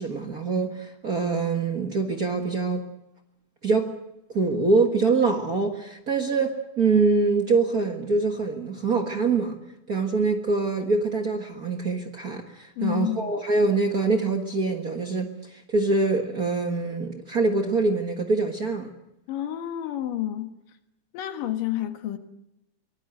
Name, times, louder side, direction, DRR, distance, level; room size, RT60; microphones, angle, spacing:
voice 1, 0.0-2.8 3.6-4.0 4.3-9.6 9.9-18.9, right 3 dB, 40° right, 1.4 m, -24 dB
voice 2, 12.8-13.3 19.3-20.6 21.1-22.2, left 13 dB, 85° left, 3.1 m, -29 dB
24.0 x 19.5 x 7.8 m
omnidirectional pair, 3.7 m